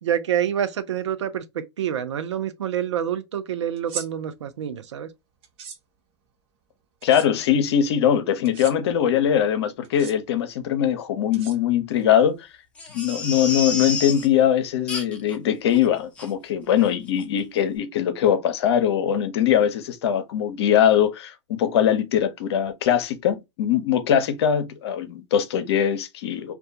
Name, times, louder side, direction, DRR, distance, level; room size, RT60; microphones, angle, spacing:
voice 1, 0.0-5.1, right 9 dB, 75° right, 0.5 m, -27 dB
sound 1, 3.8-4.1 5.4-5.8 7.0-7.3 8.4-8.7 9.8-10.1 11.3-11.9, right 6 dB, 40° right, 0.6 m, -37 dB
voice 2, 7.0-12.5 12.9-26.5, left 9 dB, 65° left, 0.6 m, -21 dB
Crying sobbing, 12.8-14.3 14.9-15.4 15.7-15.8 16.2-16.3 16.8-16.9 17.2-17.3, left 3 dB, 5° left, 0.6 m, -30 dB
2.2 x 2.2 x 2.6 m
hypercardioid pair, 110°, 15 cm